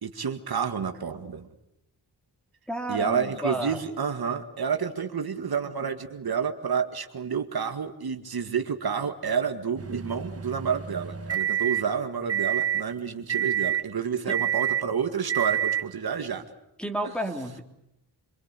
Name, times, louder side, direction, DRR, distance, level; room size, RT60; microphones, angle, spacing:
voice 1, 0.0-1.5 2.9-16.4, right 6 dB, 60° right, 6 dB, 1.9 m, -29 dB
voice 2, 2.7-3.8 14.3-14.4 16.8-17.6, right 1 dB, ahead, 4 dB, 3.0 m, -31 dB
sound 1, 9.8-11.8 12.3-12.8 13.3-13.8 14.3-14.8 15.3-15.8, right 10 dB, 35° right, 1.4 m, -27 dB
26.0 x 25.0 x 8.3 m, 0.83 s
wide cardioid pair, 150°, 41 cm